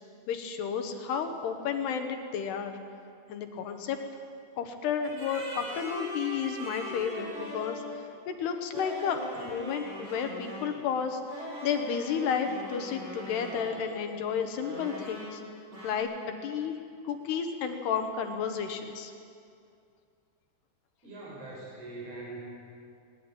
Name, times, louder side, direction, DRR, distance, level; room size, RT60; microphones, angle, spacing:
voice 1, 0.3-2.8 3.3-4.0 4.6-15.4 15.8-16.1 16.4-16.8 17.0-19.1, left 7 dB, 70° left, 6 dB, 3.2 m, -32 dB
sound 1, 5.0-8.0 8.7-10.8 11.3-14.1 14.6-15.4 15.7-16.0, equal, 75° right, 9.8 m, -40 dB
voice 2, 21.0-22.5, right 2 dB, 35° right, -4 dB, 7.8 m, -42 dB
20.5 x 20.0 x 9.0 m, 2.4 s
omnidirectional pair, 5.1 m